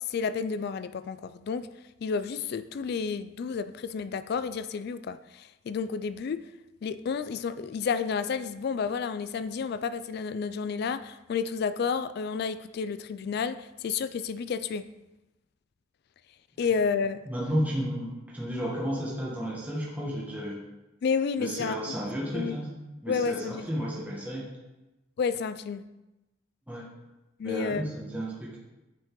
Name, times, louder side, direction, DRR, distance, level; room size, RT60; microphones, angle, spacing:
voice 1, 0.1-1.7 2.0-6.5 6.8-14.9 16.6-17.2 21.0-21.7 22.3-22.6 23.1-23.6 25.2-25.8 27.4-27.9, left 5 dB, 55° left, 13 dB, 0.3 m, -31 dB
voice 2, 17.2-20.6 21.4-22.7 23.0-24.4 26.7-26.9 27.4-28.6, equal, 10° right, -6 dB, 1.3 m, -32 dB
8.9 x 5.3 x 3.8 m, 1.0 s
head